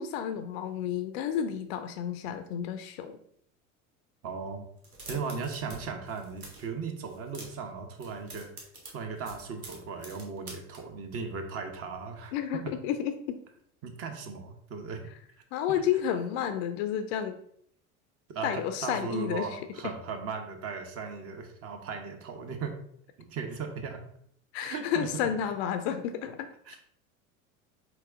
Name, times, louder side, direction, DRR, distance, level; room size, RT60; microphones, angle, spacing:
voice 1, 0.0-3.2 12.3-13.4 15.5-17.4 18.4-19.6 24.5-26.5, left 9 dB, 50° left, 10 dB, 0.5 m, -31 dB
voice 2, 4.2-4.7 5.1-8.5 8.9-12.6 13.8-15.0 15.7-15.8 18.3-22.7 23.2-24.0 24.6-25.1 26.7-26.8, right 5 dB, 35° right, 5 dB, 0.9 m, -37 dB
sound 1, 4.8-5.8 6.0-6.7 7.1-7.7 8.0-10.8, right 2 dB, 85° right, 1.2 m, -46 dB
4.5 x 4.5 x 2.5 m, 0.67 s
figure-of-eight pair, 75°, 43 cm